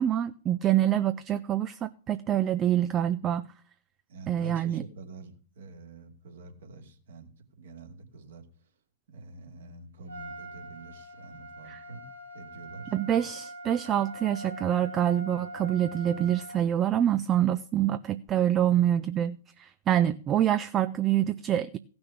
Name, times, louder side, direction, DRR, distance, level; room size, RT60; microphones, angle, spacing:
voice 1, 0.0-3.5 4.3-4.8 11.7-11.8 12.9-21.8, right 11 dB, 20° right, 0.5 m, -26 dB
voice 2, 4.1-8.5 9.1-12.1 12.3-12.9, right 3 dB, 55° right, 2.6 m, -46 dB
Trumpet, 10.1-16.6, right 1 dB, 80° right, 3.3 m, -43 dB
16.0 x 6.2 x 7.1 m
figure-of-eight pair, 110°, 0 cm